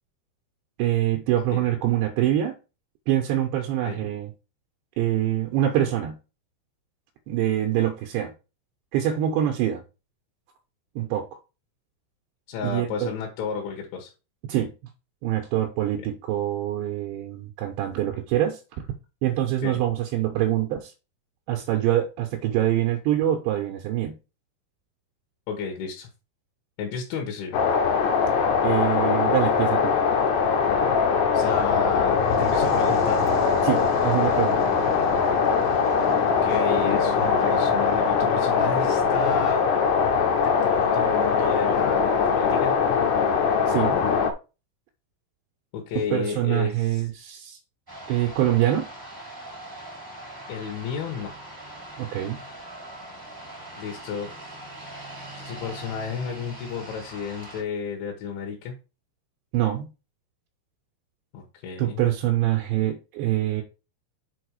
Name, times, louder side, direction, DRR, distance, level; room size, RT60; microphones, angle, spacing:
voice 1, 0.8-2.6 3.1-4.3 5.0-6.2 7.3-8.3 8.9-9.8 11.0-11.2 12.6-13.1 14.5-14.7 15.2-18.6 19.2-20.9 21.5-24.2 28.6-30.0 33.6-34.6 43.7-44.0 46.1-47.6 48.1-48.9 52.0-52.4 59.5-59.9 61.8-63.6, right 12 dB, 80° right, 2.6 m, -25 dB
voice 2, 12.5-14.1 19.6-19.8 25.5-26.1 26.8-27.6 31.3-33.3 36.2-39.7 40.4-42.7 45.7-47.0 50.5-51.3 53.8-54.3 55.4-58.8 61.3-62.1, left 6 dB, 70° left, 3.4 m, -32 dB
sound 1, 27.5-44.3, left 6 dB, 85° left, 3.5 m, -22 dB
Fire, 31.9-39.5, right 1 dB, 40° left, 1.6 m, -37 dB
sound 2, 47.9-57.6, right 1 dB, 25° right, 0.4 m, -41 dB
7.4 x 4.4 x 4.7 m
omnidirectional pair, 6.0 m